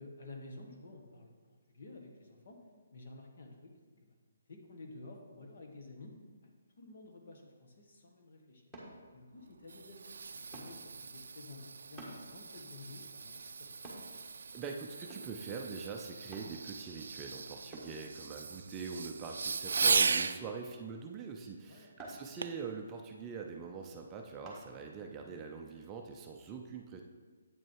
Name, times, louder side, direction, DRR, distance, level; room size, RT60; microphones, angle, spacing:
voice 1, 0.0-2.6 2.9-3.7 4.0-4.2 4.5-6.1 6.4-8.6 9.1-13.8 20.6-20.7 21.6-21.9, left 2 dB, 55° left, 2 dB, 1.5 m, -52 dB
sound 1, 8.7-9.0 10.5-10.8 12.0-12.2 13.8-14.1 15.1-15.4 16.3-16.5 17.7-18.0 19.8-20.1 22.0-22.2 24.4-24.6 25.2-25.3, right 2 dB, ahead, 1.6 m, -48 dB
Fireworks, 9.4-20.4 22.4-22.7 23.3-23.4, right 4 dB, 75° right, 0.4 m, -37 dB
voice 2, 14.5-27.0, right 5 dB, 15° right, 1 dB, 0.5 m, -43 dB
8.3 x 6.1 x 4.6 m, 1.5 s
hypercardioid pair, 165°, 0 cm